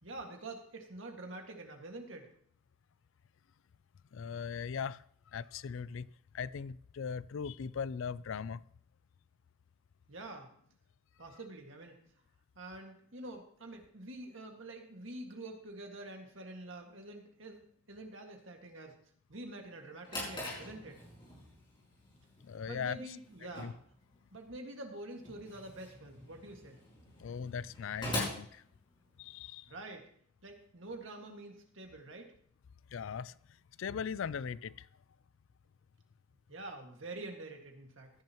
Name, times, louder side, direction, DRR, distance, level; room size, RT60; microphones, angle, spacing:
voice 1, 0.0-2.3 10.1-10.5 11.2-12.0 12.6-19.0 19.3-21.0 22.7-23.8 24.3-26.8 29.7-30.1 30.4-32.3 36.5-38.1, right 2 dB, 65° right, 1.9 m, -47 dB
voice 2, 4.1-5.0 5.3-6.1 6.3-8.6 22.4-23.0 23.4-23.7 27.2-28.6 29.2-29.7 32.9-33.3 33.8-34.9, left 6 dB, 65° left, 0.4 m, -39 dB
Drawer open or close, 19.7-29.4, left 1 dB, 25° left, 5.4 m, -44 dB
16.0 x 10.5 x 3.0 m
head